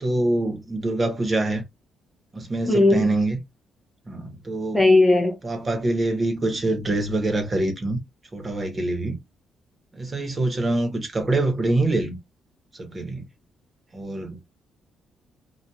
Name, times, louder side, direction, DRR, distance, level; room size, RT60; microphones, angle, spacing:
voice 1, 0.0-1.6 2.3-3.4 4.1-4.9 5.4-8.0 8.3-9.2 9.9-12.2 12.7-13.2 13.9-14.4, right 2 dB, 30° right, 1.0 m, -25 dB
voice 2, 2.7-3.1 4.7-5.3, left 2 dB, 10° left, 0.6 m, -17 dB
2.8 x 2.4 x 2.3 m
cardioid pair, 90°, 0 cm